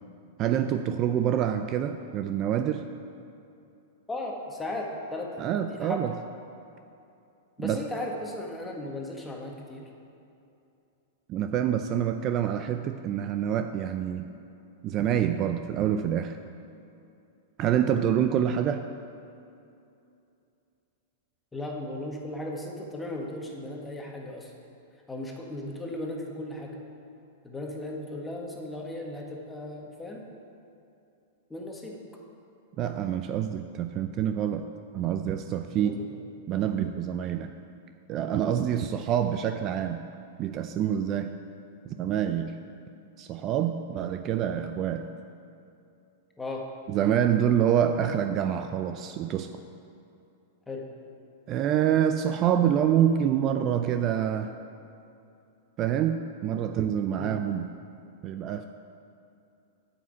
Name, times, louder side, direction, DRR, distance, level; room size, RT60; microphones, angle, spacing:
voice 1, 0.4-2.9 5.4-6.1 7.6-7.8 11.3-14.3 14.8-16.4 17.6-18.8 32.8-34.7 34.9-36.0 36.5-37.5 38.1-40.0 40.4-41.3 41.9-42.5 43.2-45.1 46.9-49.5 51.5-54.5 55.8-57.7 58.2-58.6, right 9 dB, 35° right, 8 dB, 0.4 m, -26 dB
voice 2, 4.1-6.2 7.6-9.8 21.5-24.5 25.1-26.7 27.4-30.2 31.5-32.0 35.7-36.1 46.4-46.6 50.7-50.8 57.2-57.4, left 1 dB, 10° left, -1 dB, 1.6 m, -36 dB
9.3 x 5.9 x 8.3 m, 2.7 s
hypercardioid pair, 125°, 0 cm